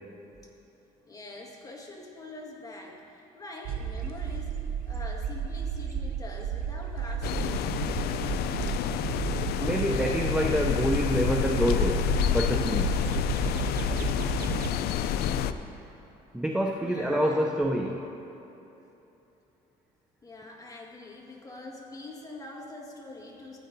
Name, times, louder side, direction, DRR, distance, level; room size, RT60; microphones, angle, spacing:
voice 1, 1.1-8.2 16.8-17.5 20.2-23.6, left 2 dB, 20° left, -2 dB, 1.6 m, -44 dB
sound 1, 3.6-14.8, right 7 dB, 60° right, 0.5 m, -33 dB
sound 2, 7.2-15.5, left 9 dB, 70° left, 0.4 m, -28 dB
voice 2, 9.6-13.1 16.3-18.1, equal, 5° right, 0 dB, 0.5 m, -27 dB
15.5 x 9.1 x 2.7 m, 3.0 s
cardioid pair, 110°, 17 cm